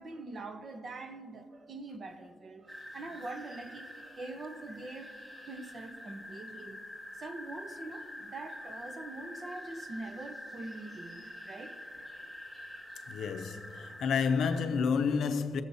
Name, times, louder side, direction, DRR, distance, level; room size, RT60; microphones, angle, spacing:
voice 1, 0.0-6.8 7.2-11.8, right 2 dB, 40° right, 0.8 m, -44 dB
sound 1, 2.7-14.7, left 1 dB, 15° right, 1.4 m, -46 dB
voice 2, 13.1-15.6, left 5 dB, 75° left, 0.6 m, -30 dB
19.5 x 7.3 x 2.7 m
cardioid pair, 120°, 0 cm